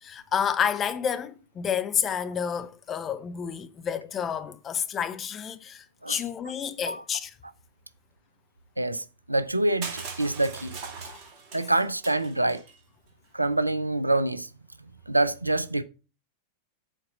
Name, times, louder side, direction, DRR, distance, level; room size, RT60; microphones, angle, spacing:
voice 1, 0.0-7.3 11.0-11.2, left 8 dB, 25° left, 0.8 m, -30 dB
voice 2, 8.8-10.8 11.5-12.6 13.3-14.5 15.1-15.8, right 2 dB, 85° right, 0.5 m, -26 dB
Crushing, 9.8-12.7, right 4 dB, 40° right, 2.1 m, -40 dB
7.7 x 4.4 x 6.1 m
figure-of-eight pair, 90°, 0 cm